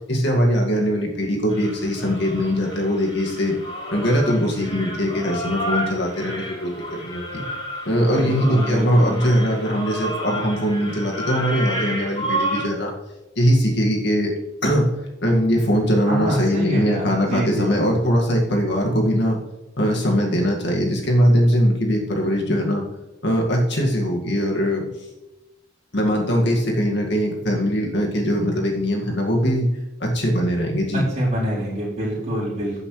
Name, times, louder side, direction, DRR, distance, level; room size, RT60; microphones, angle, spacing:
voice 1, 0.1-3.5 3.9-7.4 7.9-12.9 13.4-14.3 14.6-14.9 15.2-19.4 19.8-22.8 23.2-24.9 25.9-29.7 30.0-31.0, equal, 60° left, 0 dB, 2.1 m, -21 dB
sound 1, 1.5-12.6, equal, 25° left, 3.5 m, -31 dB
voice 2, 8.1-9.2 16.1-17.9 30.9-32.8, equal, 35° right, -8 dB, 4.2 m, -26 dB
14.5 x 7.9 x 3.3 m, 1.0 s
head